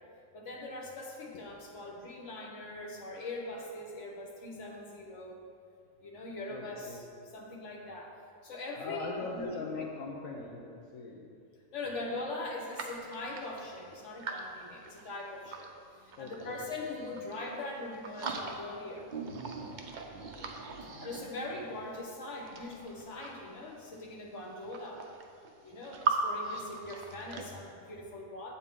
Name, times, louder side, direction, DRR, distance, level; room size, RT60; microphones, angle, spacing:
voice 1, 0.3-5.4 6.0-7.0 7.3-8.1 8.4-9.1 9.3-9.9 11.7-15.7 16.0-19.1 21.0-25.0 25.6-28.5, left 2 dB, 60° left, -2 dB, 1.4 m, -41 dB
voice 2, 6.5-7.0 8.8-11.3 16.2-16.6 20.3-21.0, left 4 dB, 80° left, -3 dB, 1.2 m, -41 dB
sound 1, 12.7-15.7 16.1-17.6 17.9-18.8 19.1-21.7 22.3-23.6 24.3-24.4 24.6-26.2 26.4-27.4, right 5 dB, 50° right, 0.6 m, -40 dB
8.1 x 7.2 x 3.7 m, 2.3 s
omnidirectional pair, 1.4 m